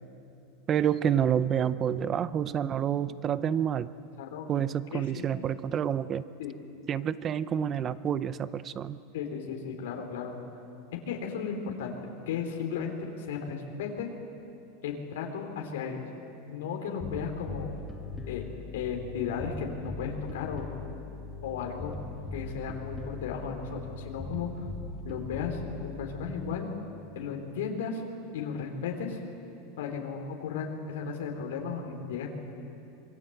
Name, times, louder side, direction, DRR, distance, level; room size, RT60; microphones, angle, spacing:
voice 1, 0.7-3.9 4.5-6.2 6.9-9.0, right 9 dB, 25° right, 16 dB, 0.6 m, -28 dB
voice 2, 4.9-5.3 6.4-6.5 9.1-10.4 11.1-12.0 12.3-14.1 14.8-16.0 16.5-17.8 18.3-18.4 18.7-20.7 21.4-21.9 22.3-24.7 25.0-26.7 27.2-28.0 28.3-29.2 29.8-32.3, left 6 dB, 85° left, 2 dB, 3.6 m, -35 dB
Bass guitar, 17.0-26.6, left 3 dB, 15° left, 2.3 m, -40 dB
26.0 x 22.5 x 7.9 m, 2.7 s
supercardioid pair, 155°, 0 cm